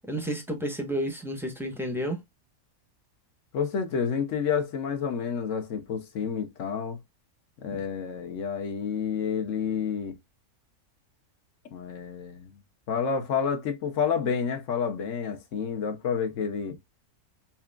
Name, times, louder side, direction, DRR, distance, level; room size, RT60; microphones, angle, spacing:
voice 1, 0.1-2.2 7.7-7.8, equal, ahead, 0.7 m, -31 dB
voice 2, 3.5-7.0 7.6-10.2 11.7-12.5 12.9-16.8, left 6 dB, 60° left, 1.0 m, -29 dB
5.8 x 2.4 x 2.3 m
omnidirectional pair, 1.6 m